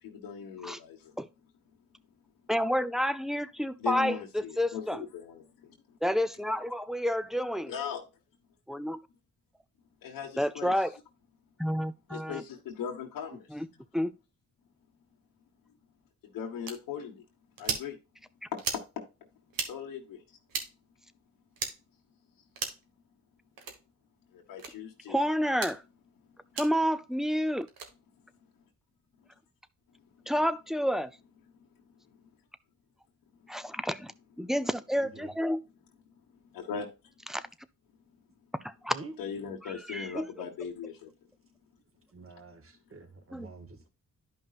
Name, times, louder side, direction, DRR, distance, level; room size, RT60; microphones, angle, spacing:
voice 1, 0.0-1.1 3.8-6.0 7.7-8.0 10.0-10.7 12.1-13.6 16.2-17.2 17.6-18.0 18.5-19.0 19.6-20.2 24.3-25.2 29.9-30.3 31.5-31.7 32.0-32.2 33.4-33.5 36.5-36.9 39.2-41.1, left 7 dB, 90° left, 1.3 m, -39 dB
voice 2, 2.5-5.0 6.0-7.7 8.7-9.0 10.4-11.0 11.6-12.4 13.5-13.7 13.9-14.1 25.1-25.8 26.6-27.7 30.3-31.1 33.5-34.1 34.4-35.6 37.3-37.4 38.6-38.9 39.9-40.3 43.3-43.5, equal, ahead, 0.5 m, -29 dB
sound 1, 16.7-16.8 17.6-17.9 18.6-18.9 19.5-19.7 20.5-20.7 21.6-21.7 22.5-22.8 23.6-23.8 24.6-24.7 25.5-25.7 26.6-26.7 27.7-27.9, right 5 dB, 80° right, 1.5 m, -34 dB
voice 3, 35.0-35.3 38.9-39.1 42.1-43.9, right 3 dB, 40° right, 1.7 m, -47 dB
11.5 x 5.3 x 2.4 m
cardioid pair, 75°, 34 cm